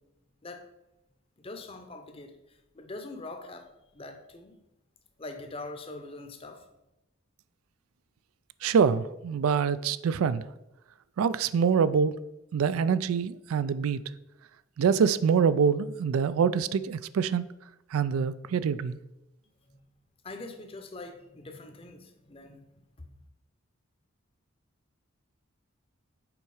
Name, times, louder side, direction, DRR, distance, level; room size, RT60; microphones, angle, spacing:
voice 1, 1.4-2.4 2.7-4.5 5.2-6.6 20.2-22.6, left 2 dB, 25° left, 0.7 m, -43 dB
voice 2, 8.6-10.4 11.2-12.1 12.5-14.0 14.8-17.4 17.9-19.0, right 6 dB, 85° right, 0.3 m, -25 dB
7.0 x 4.6 x 4.8 m
head